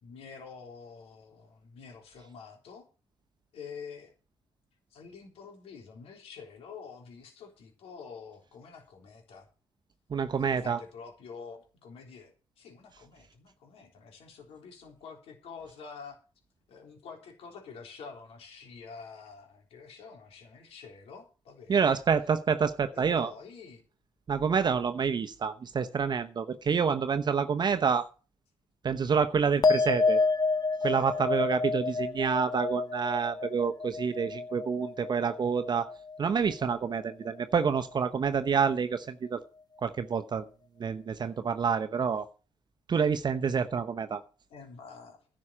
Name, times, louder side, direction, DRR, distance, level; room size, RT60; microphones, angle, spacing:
voice 1, 0.0-2.9 3.5-4.1 4.9-9.5 10.4-16.2 16.7-22.0 22.9-23.8 44.5-45.3, left 5 dB, 85° left, 3 dB, 3.6 m, -47 dB
voice 2, 10.1-10.8 21.7-23.3 24.3-28.1 28.8-30.2 30.8-35.9 36.2-39.4 39.8-40.4 40.8-42.3 42.9-44.2, right 6 dB, 45° right, 8 dB, 0.9 m, -28 dB
sound 1, 29.6-36.3 36.6-37.2, left 4 dB, 40° left, 0.9 m, -29 dB
11.0 x 6.3 x 8.6 m, 0.35 s
cardioid pair, 80°, 10 cm